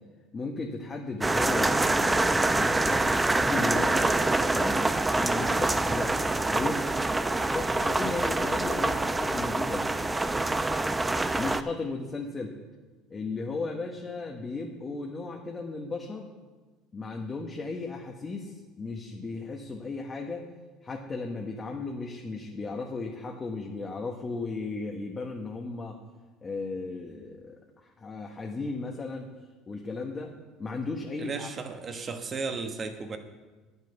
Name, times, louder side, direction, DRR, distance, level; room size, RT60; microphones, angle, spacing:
voice 1, 0.3-4.1 4.4-4.8 5.2-6.2 6.5-10.0 11.4-12.5 13.1-16.3 16.9-20.4 20.8-26.0 26.4-29.3 29.7-30.3 30.6-31.5, left 3 dB, 25° left, 1 dB, 1.2 m, -35 dB
sound 1, 1.2-11.6, right 2 dB, 15° right, 0.6 m, -26 dB
voice 2, 31.2-33.2, right 4 dB, 35° right, 6 dB, 1.2 m, -35 dB
9.0 x 8.3 x 7.0 m, 1.3 s
supercardioid pair, 100°, 0 cm